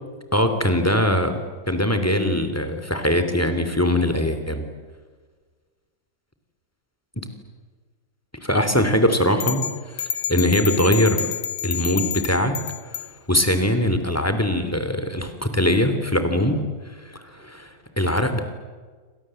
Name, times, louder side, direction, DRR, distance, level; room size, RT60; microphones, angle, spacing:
voice 1, 0.3-1.4 1.7-4.7 7.2-7.3 8.4-9.6 9.9-11.3 11.6-12.6 12.9-16.6 16.8-18.4, left 1 dB, 10° left, 8 dB, 3.0 m, -22 dB
sound 1, 9.4-13.1, left 9 dB, 75° left, 2.0 m, -29 dB
29.5 x 25.5 x 7.9 m, 1.5 s
omnidirectional pair, 2.0 m